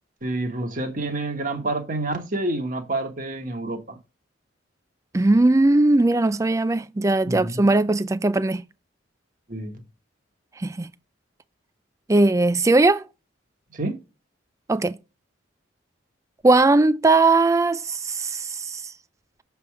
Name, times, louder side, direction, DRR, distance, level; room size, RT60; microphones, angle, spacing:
voice 1, 0.2-4.0 7.3-7.6 9.5-9.8 13.7-14.0, right 2 dB, 40° right, 1.3 m, -28 dB
voice 2, 5.1-8.6 10.6-10.9 12.1-13.1 14.7-15.0 16.4-18.9, right 2 dB, 15° right, 0.3 m, -19 dB
6.8 x 3.4 x 4.6 m
head